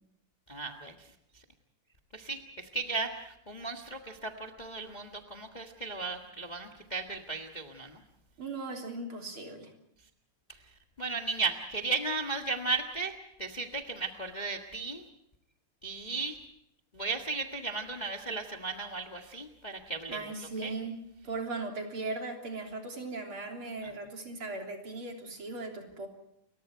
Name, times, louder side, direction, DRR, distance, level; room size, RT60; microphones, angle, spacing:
voice 1, 0.5-1.4 2.1-8.0 10.5-10.6 11.0-15.0 15.8-16.4 16.9-20.2 20.6-20.7 23.8-23.9, right 4 dB, 55° left, 3 dB, 0.4 m, -36 dB
voice 2, 8.4-9.7 20.1-21.0 21.2-26.1, right 3 dB, 40° right, 2 dB, 4.0 m, -38 dB
29.5 x 23.0 x 4.5 m, 0.77 s
omnidirectional pair, 3.8 m